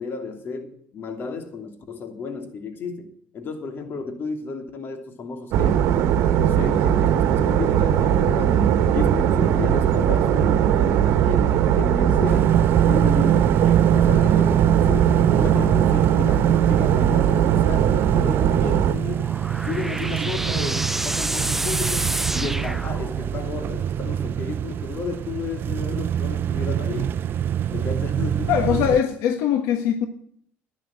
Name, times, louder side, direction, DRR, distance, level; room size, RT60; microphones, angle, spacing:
voice 1, 0.0-5.9 6.4-12.6 12.8-19.3 19.6-27.1 27.7-29.0, left 4 dB, 45° left, 2.9 m, -33 dB
sound 1, 5.5-18.9, right 9 dB, 65° right, 1.4 m, -20 dB
sound 2, 12.2-29.0, right 10 dB, 50° right, 0.6 m, -24 dB
sound 3, 18.9-23.5, right 1 dB, 5° right, 0.6 m, -29 dB
voice 2, 28.5-30.1, left 9 dB, 75° left, 1.3 m, -21 dB
11.0 x 10.5 x 7.7 m
supercardioid pair, 95°, 5 cm